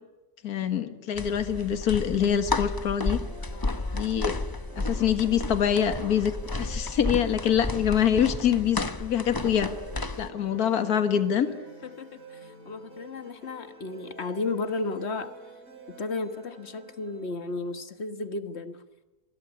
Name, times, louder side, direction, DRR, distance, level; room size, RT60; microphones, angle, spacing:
voice 1, 0.4-3.2 3.9-4.4 4.8-9.7 10.2-11.5, left 9 dB, 65° left, 10 dB, 2.0 m, -25 dB
sound 1, 1.2-10.3, left 2 dB, 20° left, 0.6 m, -32 dB
sound 2, 3.2-17.8, right 3 dB, 55° right, 5.8 m, -49 dB
voice 2, 3.5-4.2 8.1-8.2 11.8-15.4 15.9-18.8, left 3 dB, 40° left, 10 dB, 1.7 m, -34 dB
27.5 x 22.0 x 9.7 m, 1.1 s
omnidirectional pair, 1.8 m